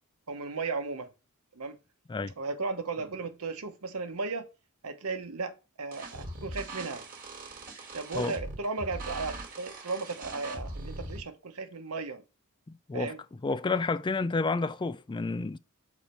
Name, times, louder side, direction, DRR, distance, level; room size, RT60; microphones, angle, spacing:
voice 1, 0.3-1.1 1.5-1.8 2.4-4.4 4.8-7.0 7.9-12.2 12.9-13.2, right 3 dB, 85° right, 1.0 m, -35 dB
sound 1, 5.9-11.2, right 2 dB, 40° right, 1.5 m, -41 dB
voice 2, 12.7-15.6, left 3 dB, 20° left, 0.3 m, -30 dB
7.0 x 4.2 x 4.4 m
head